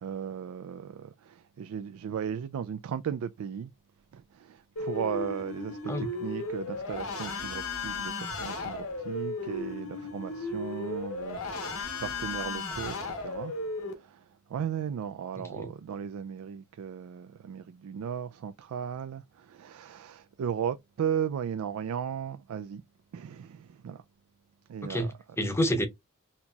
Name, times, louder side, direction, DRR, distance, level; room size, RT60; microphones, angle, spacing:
voice 1, 0.0-3.7 4.1-13.5 14.0-14.2 14.5-22.8 23.1-24.0 24.7-25.1, right 8 dB, 90° right, 0.3 m, -36 dB
sound 1, 4.8-13.9, left 3 dB, 85° left, 1.0 m, -35 dB
voice 2, 15.4-15.7 24.8-25.9, equal, 10° left, 0.7 m, -29 dB
4.2 x 2.9 x 2.2 m
head